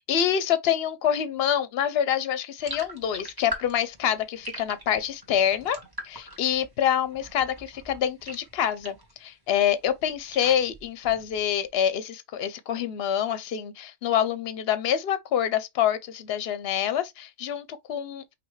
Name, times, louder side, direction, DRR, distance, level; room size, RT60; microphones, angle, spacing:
voice 1, 0.1-5.8 6.0-18.3, left 9 dB, 60° left, 0.9 m, -26 dB
sound 1, 2.6-9.2 9.5-11.6, equal, 20° right, 1.4 m, -42 dB
5.4 x 2.7 x 3.2 m
omnidirectional pair, 1.3 m